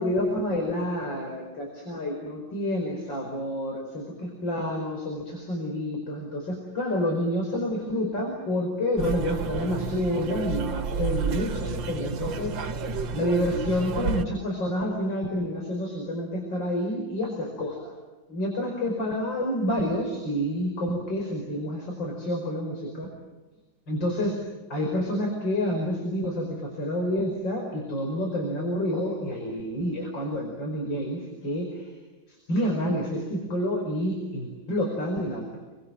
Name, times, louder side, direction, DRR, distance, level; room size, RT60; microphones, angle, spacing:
voice 1, 0.0-12.7 13.1-17.9 18.3-23.1 23.9-24.4 24.7-31.9 32.3-35.6, equal, 75° left, 1 dB, 5.8 m, -29 dB
sound 1, 9.0-14.2, right 4 dB, 80° right, 2.0 m, -31 dB
29.0 x 23.5 x 7.7 m, 1.2 s
omnidirectional pair, 2.1 m